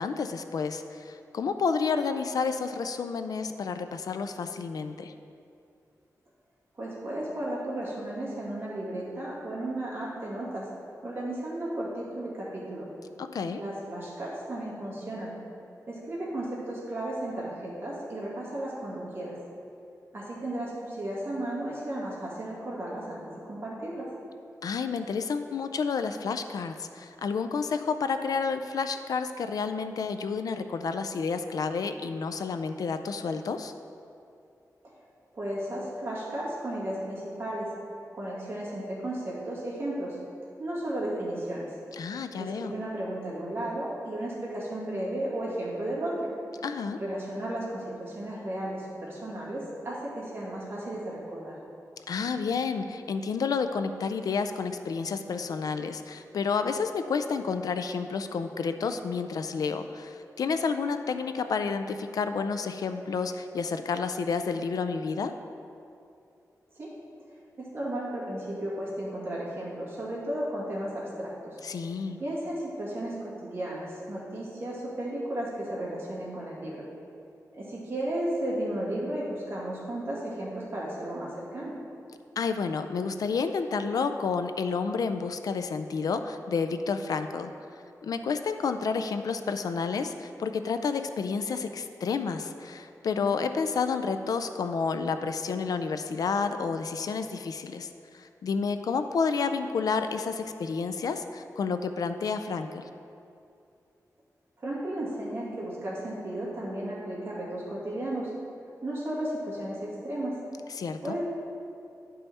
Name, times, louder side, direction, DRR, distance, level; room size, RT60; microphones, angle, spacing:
voice 1, 0.0-5.1 13.2-13.6 24.6-33.7 41.9-42.7 46.6-47.0 52.1-65.3 71.6-72.2 82.4-87.5 88.0-102.8 110.8-111.2, left 5 dB, 75° left, 9 dB, 0.4 m, -30 dB
voice 2, 6.8-10.7 11.0-12.9 13.6-15.3 15.9-19.4 20.1-24.1 35.4-37.7 38.2-40.2 40.6-41.7 42.4-46.3 47.0-51.5 66.8-66.9 67.6-71.6 72.2-76.8 77.5-81.7 104.6-108.3 108.8-110.3 111.0-111.2, right 1 dB, 40° right, -7 dB, 2.1 m, -34 dB
10.5 x 5.5 x 4.2 m, 2.6 s
wide cardioid pair, 175°, 6 cm